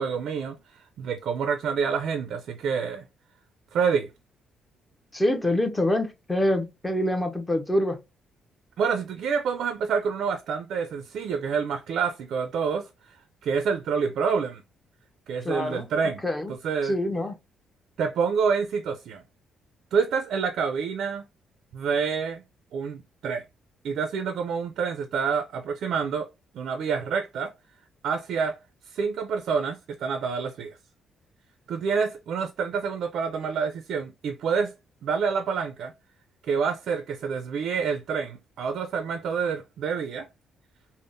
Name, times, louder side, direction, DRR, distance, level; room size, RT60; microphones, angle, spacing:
voice 1, 0.0-3.0 3.7-4.1 8.8-12.9 13.4-14.6 15.3-16.2 16.6-17.0 18.0-19.2 19.9-21.2 21.7-22.4 22.7-23.4 23.8-26.3 26.5-27.5 28.0-28.6 28.9-30.8 31.7-34.7 35.0-35.9 36.5-40.3, right 6 dB, 75° right, 0.4 m, -27 dB
voice 2, 5.1-8.0 15.4-15.9 16.2-16.5 16.8-17.4, left 1 dB, 15° left, 0.6 m, -25 dB
3.4 x 2.0 x 2.5 m
cardioid pair, 90°, 0 cm